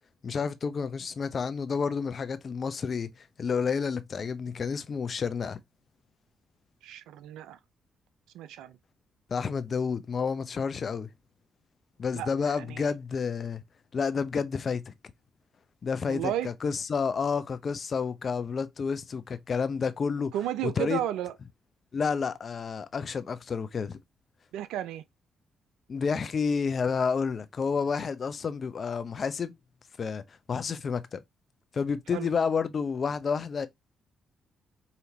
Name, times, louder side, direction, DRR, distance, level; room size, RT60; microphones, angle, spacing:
voice 1, 0.2-5.6 9.3-11.1 12.0-13.6 13.9-14.9 15.8-20.4 20.6-21.0 21.9-24.0 25.9-29.5 30.0-31.2 31.7-33.7, left 5 dB, 50° left, 0.6 m, -30 dB
voice 2, 6.8-7.6 8.3-8.8 12.1-12.9 16.1-16.5 20.3-21.3 24.5-25.0 32.1-32.3, right 12 dB, 75° right, 0.3 m, -33 dB
5.0 x 2.8 x 2.7 m
hypercardioid pair, 45°, 0 cm